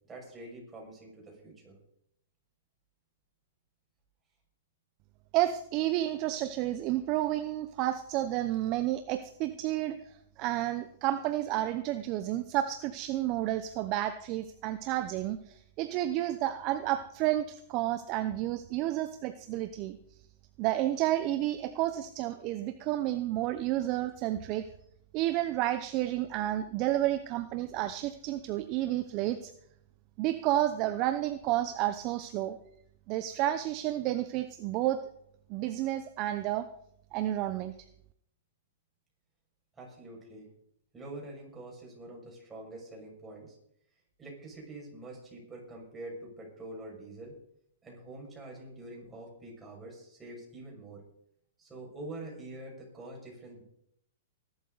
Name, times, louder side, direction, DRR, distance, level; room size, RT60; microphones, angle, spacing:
voice 1, 0.0-1.8 39.7-40.5 40.9-43.5 44.2-47.3 47.8-51.0 51.6-53.6, right 2 dB, 15° right, -2 dB, 6.2 m, -45 dB
voice 2, 5.3-20.0 20.6-24.6 25.1-29.5 30.2-32.6 33.1-35.0 35.5-36.7 37.1-37.7, right 14 dB, 35° right, 10 dB, 0.8 m, -31 dB
20.5 x 12.0 x 4.1 m, 0.73 s
hypercardioid pair, 145°, 0 cm